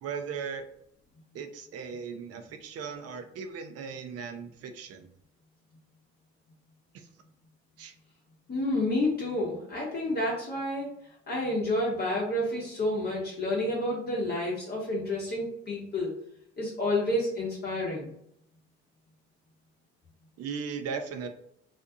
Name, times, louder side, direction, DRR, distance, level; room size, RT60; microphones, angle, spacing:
voice 1, 0.0-0.7 1.3-5.1 6.9-7.1 7.8-7.9 20.4-21.3, right 6 dB, 55° right, 7 dB, 0.5 m, -37 dB
voice 2, 8.5-10.9 11.3-16.1 16.6-18.1, left 1 dB, 35° left, -4 dB, 0.9 m, -29 dB
2.6 x 2.2 x 2.6 m, 0.73 s
supercardioid pair, 65°, 29 cm